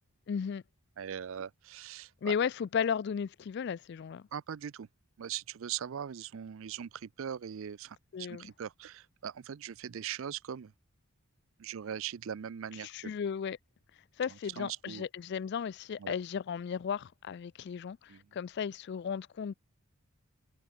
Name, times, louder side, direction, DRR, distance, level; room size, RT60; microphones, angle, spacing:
voice 1, 0.3-0.6 2.2-4.2 8.1-8.5 12.8-13.6 14.2-19.5, left 7 dB, 50° left, 0.3 m, -35 dB
voice 2, 1.0-2.3 4.3-4.9 5.2-10.7 11.6-13.1 14.3-15.0 16.0-16.1 18.1-18.2, right 8 dB, 65° right, 0.4 m, -40 dB
open air
head